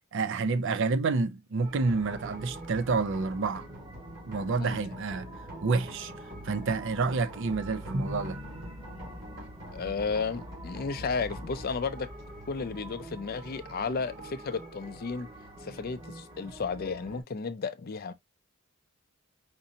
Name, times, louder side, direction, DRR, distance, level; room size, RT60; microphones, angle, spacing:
voice 1, 0.1-3.7 4.3-5.3 5.6-6.1 6.4-8.4, right 4 dB, 60° right, 0.5 m, -29 dB
sound 1, 1.6-17.2, right 1 dB, 25° right, 1.4 m, -47 dB
sound 2, 1.9-15.7, equal, 45° right, 2.4 m, -46 dB
Drum, 7.9-10.1, equal, 85° right, 1.0 m, -39 dB
voice 2, 9.7-12.1 12.5-15.3 15.6-18.1, left 4 dB, 45° left, 0.5 m, -33 dB
5.1 x 2.7 x 2.7 m
head